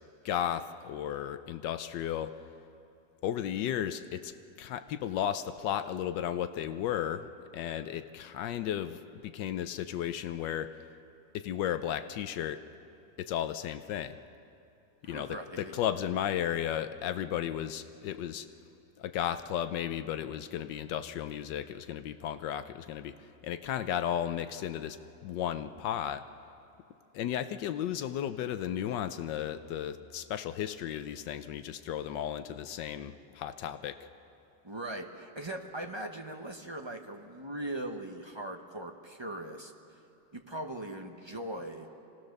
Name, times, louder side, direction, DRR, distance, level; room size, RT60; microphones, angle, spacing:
voice 1, 0.2-2.3 3.2-4.3 4.6-7.3 7.5-10.7 11.3-12.6 13.2-14.1 15.0-18.5 19.0-23.1 23.4-25.0 25.2-26.2 27.1-34.0, left 10 dB, 80° left, 11 dB, 1.3 m, -34 dB
voice 2, 15.0-15.8 34.6-39.7 40.3-42.0, right 1 dB, 20° right, 3 dB, 0.7 m, -40 dB
26.0 x 17.5 x 6.6 m, 2.6 s
omnidirectional pair, 1.9 m